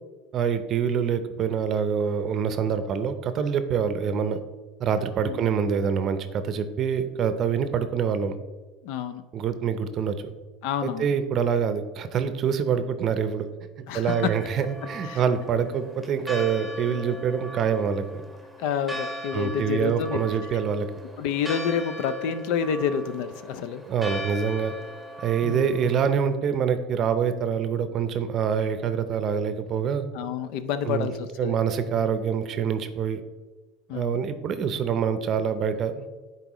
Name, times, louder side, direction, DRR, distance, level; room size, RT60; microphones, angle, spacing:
voice 1, 0.3-4.4 4.8-8.3 9.3-10.2 10.8-13.5 13.9-18.2 19.3-20.9 23.9-24.7 25.2-30.1 30.8-31.1 31.4-33.2 33.9-36.1, right 7 dB, 45° right, 10 dB, 0.6 m, -25 dB
voice 2, 8.8-9.2 10.6-11.1 13.9-14.3 15.0-15.2 18.6-20.2 21.2-23.8 25.4-25.8 30.1-31.6 33.9-34.2, left 7 dB, 70° left, 12 dB, 0.5 m, -28 dB
Church bell, 14.1-26.2, equal, ahead, 1.0 m, -39 dB
10.0 x 4.1 x 3.0 m, 1.3 s
supercardioid pair, 105°, 0 cm